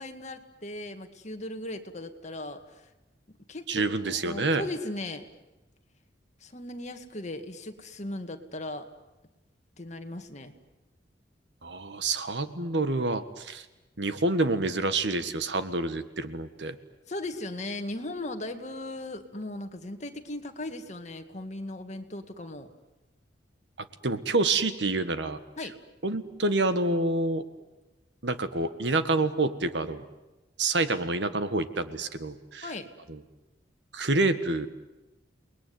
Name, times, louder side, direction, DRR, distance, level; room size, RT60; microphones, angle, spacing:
voice 1, 0.0-2.9 3.5-5.3 6.4-8.9 9.8-10.5 17.1-22.7 25.6-25.8 32.6-32.9, left 1 dB, 40° left, 7 dB, 2.0 m, -37 dB
voice 2, 3.7-4.6 11.6-13.6 14.0-16.7 24.0-25.4 26.0-27.4 28.2-30.0 30.6-32.7 33.9-34.7, right 2 dB, 70° right, 11 dB, 1.7 m, -27 dB
29.5 x 20.5 x 9.5 m, 1.0 s
head